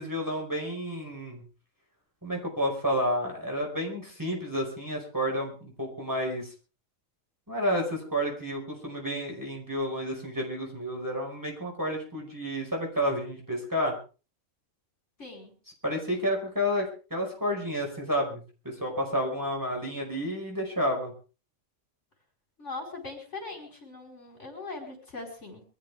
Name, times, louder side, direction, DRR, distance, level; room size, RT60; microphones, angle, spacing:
voice 1, 0.0-1.4 2.2-6.5 7.5-13.9 15.8-21.1, equal, 15° right, -1 dB, 5.1 m, -30 dB
voice 2, 15.2-15.5 22.6-25.6, left 3 dB, 65° left, 1 dB, 5.1 m, -40 dB
24.0 x 13.5 x 3.5 m, 0.35 s
omnidirectional pair, 1.3 m